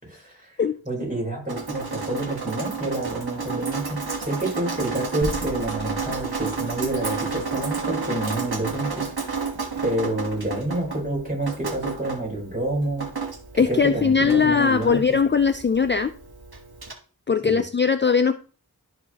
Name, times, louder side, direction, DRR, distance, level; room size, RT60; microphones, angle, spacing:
voice 1, 0.0-0.6 0.8-9.1 9.8-13.1 13.5-15.2 17.4-17.6, right 1 dB, 20° right, -3 dB, 4.0 m, -28 dB
Drip, 1.5-16.9, right 5 dB, 85° right, 1.4 m, -32 dB
sound 1, 5.2-9.4, equal, 65° right, 1.8 m, -39 dB
voice 2, 13.6-16.1 17.3-18.3, left 5 dB, 30° left, 10 dB, 0.4 m, -20 dB
13.0 x 4.3 x 2.9 m, 0.40 s
wide cardioid pair, 45°, 37 cm